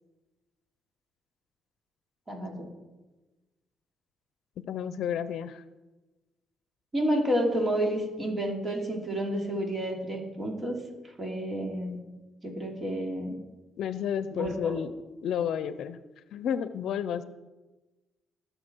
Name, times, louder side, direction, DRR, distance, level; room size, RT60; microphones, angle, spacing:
voice 1, 2.3-2.7 6.9-10.8 11.2-12.0 12.4-13.3 14.3-14.8, equal, 30° right, 1 dB, 3.0 m, -30 dB
voice 2, 4.7-5.6 13.8-14.9 15.2-16.0 16.3-17.2, left 8 dB, 75° left, 13 dB, 0.6 m, -31 dB
19.0 x 6.9 x 4.6 m, 1.2 s
cardioid pair, 90°, 0 cm